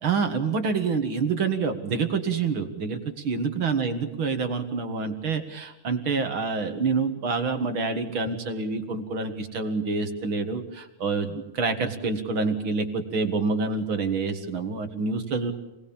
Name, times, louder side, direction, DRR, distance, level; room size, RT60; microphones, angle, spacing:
voice 1, 0.0-15.5, right 4 dB, 45° right, 6 dB, 2.2 m, -27 dB
27.0 x 20.0 x 7.2 m, 0.99 s
omnidirectional pair, 3.9 m